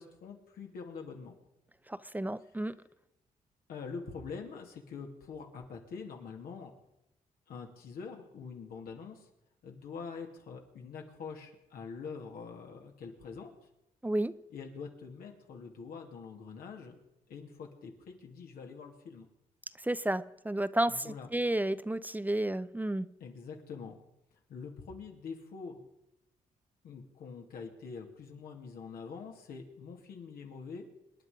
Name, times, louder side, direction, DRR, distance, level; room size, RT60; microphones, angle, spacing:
voice 1, 0.0-1.3 3.7-6.7 7.5-9.3 9.6-13.5 14.5-17.0 17.3-19.3 20.9-21.3 23.2-24.0 24.5-25.8 26.8-30.9, left 5 dB, 85° left, 2 dB, 2.8 m, -45 dB
voice 2, 1.9-2.8 14.0-14.3 19.8-23.1, right 1 dB, 10° right, 15 dB, 0.6 m, -32 dB
26.0 x 10.0 x 5.2 m, 0.88 s
cardioid pair, 75°, 15 cm